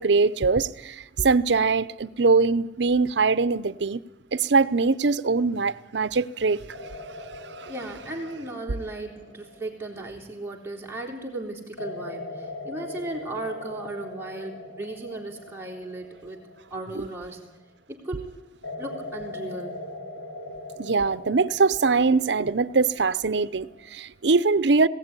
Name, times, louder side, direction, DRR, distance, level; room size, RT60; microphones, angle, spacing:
voice 1, 0.0-4.0 4.3-6.6 7.6-7.7 16.9-17.1 20.8-24.9, right 4 dB, 80° right, 0.7 m, -22 dB
sound 1, 6.7-10.9 11.8-17.8 18.6-24.0, left 2 dB, 75° left, 5.0 m, -41 dB
voice 2, 7.7-16.4 16.7-17.4 17.9-18.3 18.8-19.8, right 2 dB, 15° right, 3.6 m, -36 dB
20.0 x 17.0 x 9.7 m
head